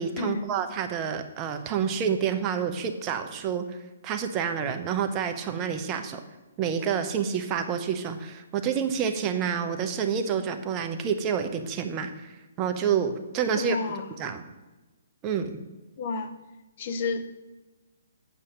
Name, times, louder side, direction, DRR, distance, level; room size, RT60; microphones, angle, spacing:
voice 1, 0.0-3.7 4.0-6.2 6.6-12.3 12.6-13.8 14.2-14.4 15.2-15.6, right 7 dB, 25° right, 6 dB, 0.8 m, -28 dB
voice 2, 13.5-14.1 16.0-16.3 16.8-17.2, left 4 dB, 45° left, 9 dB, 0.8 m, -30 dB
9.0 x 5.6 x 5.1 m, 1.1 s
hypercardioid pair, 140°, 0 cm